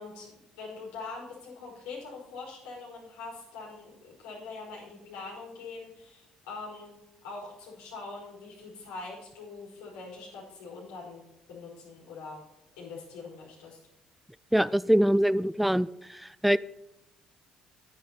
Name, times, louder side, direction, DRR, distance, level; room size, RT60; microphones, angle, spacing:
voice 1, 0.0-6.9 7.2-12.4 12.8-13.8, left 3 dB, 90° left, -4 dB, 4.4 m, -43 dB
voice 2, 14.5-16.6, equal, ahead, 17 dB, 0.4 m, -24 dB
9.7 x 9.1 x 4.3 m, 0.91 s
supercardioid pair, 65°, 2 cm